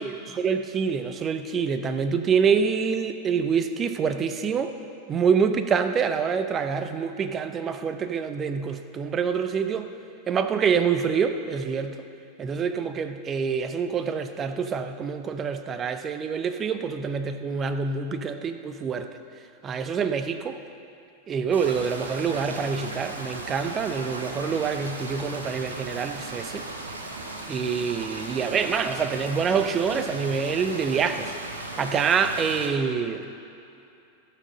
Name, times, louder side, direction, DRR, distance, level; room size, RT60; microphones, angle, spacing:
voice 1, 0.0-4.7 5.1-9.9 10.3-12.0 12.4-19.1 19.6-20.6 21.3-26.6 27.5-31.3 31.8-33.3, right 6 dB, 25° right, 9 dB, 0.7 m, -26 dB
sound 1, 21.5-32.7, right 2 dB, 75° right, 1.2 m, -37 dB
16.5 x 6.3 x 5.3 m, 2.6 s
figure-of-eight pair, 90°, 0 cm